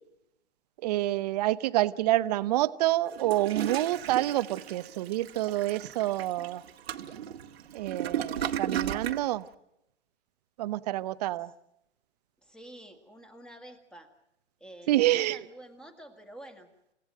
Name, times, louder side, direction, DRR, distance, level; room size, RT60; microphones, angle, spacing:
voice 1, 0.8-6.6 7.7-9.5 10.6-11.5 14.9-15.4, right 15 dB, 35° right, 15 dB, 0.8 m, -28 dB
Toilet flush, 3.1-9.3, right 9 dB, 60° right, 1.6 m, -35 dB
voice 2, 12.4-14.1 14.6-16.7, right 1 dB, ahead, 7 dB, 1.9 m, -49 dB
29.0 x 16.5 x 7.6 m, 0.84 s
hypercardioid pair, 135°, 36 cm